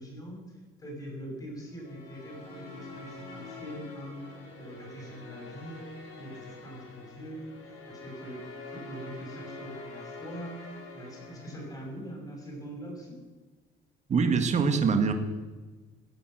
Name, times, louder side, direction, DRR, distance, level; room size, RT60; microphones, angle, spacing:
voice 1, 0.0-5.9 6.2-8.4 8.7-13.2, equal, 15° left, -1 dB, 6.1 m, -43 dB
sound 1, 1.7-12.1, left 2 dB, 85° left, 6.0 m, -46 dB
voice 2, 14.1-15.1, right 5 dB, 35° right, 7 dB, 1.8 m, -24 dB
17.0 x 9.2 x 7.8 m, 1.3 s
cardioid pair, 150°, 21 cm